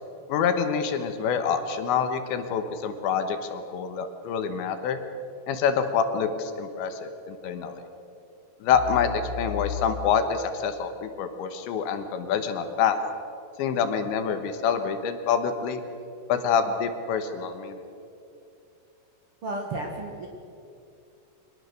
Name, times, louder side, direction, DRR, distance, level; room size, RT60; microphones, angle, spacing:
voice 1, 0.3-5.0 5.5-7.9 8.6-13.0 13.6-15.8 16.3-17.8, left 7 dB, 75° left, 8 dB, 3.4 m, -26 dB
voice 2, 19.4-20.3, right 2 dB, 80° right, 1 dB, 1.2 m, -32 dB
25.0 x 19.5 x 6.6 m, 2.6 s
omnidirectional pair, 5.6 m